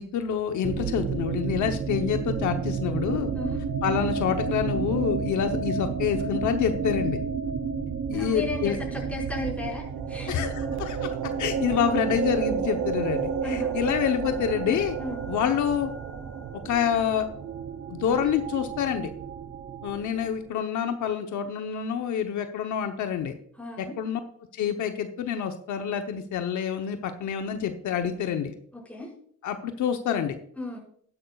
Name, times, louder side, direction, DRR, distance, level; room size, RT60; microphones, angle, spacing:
voice 1, 0.0-3.3 3.8-7.2 8.1-8.8 10.3-11.1 11.4-15.0 15.3-15.9 16.6-17.3 17.9-19.1 19.8-23.3 23.8-24.2 24.5-28.5 29.4-30.4, left 8 dB, 75° left, 6 dB, 0.9 m, -27 dB
sound 1, 0.6-20.5, right 5 dB, 40° right, 0.9 m, -32 dB
voice 2, 8.1-10.3 13.4-13.9 15.0-15.2 23.6-23.9 28.7-29.1 30.5-30.8, left 2 dB, 5° left, -3 dB, 5.1 m, -35 dB
sound 2, 9.6-17.6, right 7 dB, 75° right, 0.8 m, -33 dB
12.5 x 11.0 x 2.4 m, 0.62 s
cardioid pair, 90°, 30 cm